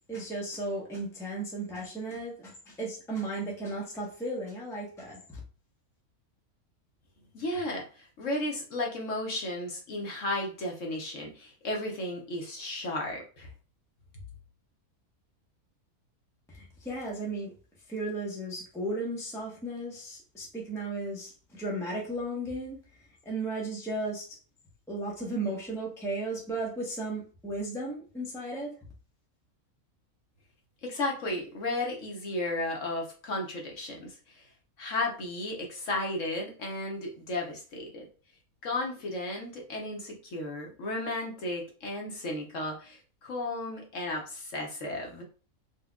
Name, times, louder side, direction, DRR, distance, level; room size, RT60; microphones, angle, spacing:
voice 1, 0.1-5.4 16.5-17.5 17.9-22.8 23.2-24.4 24.9-28.7, right 2 dB, 5° left, -3 dB, 0.6 m, -35 dB
voice 2, 7.3-13.5 30.8-34.4 34.8-38.0 38.6-45.2, left 2 dB, 60° left, 0 dB, 1.1 m, -34 dB
4.2 x 2.4 x 2.2 m, 0.38 s
omnidirectional pair, 1.5 m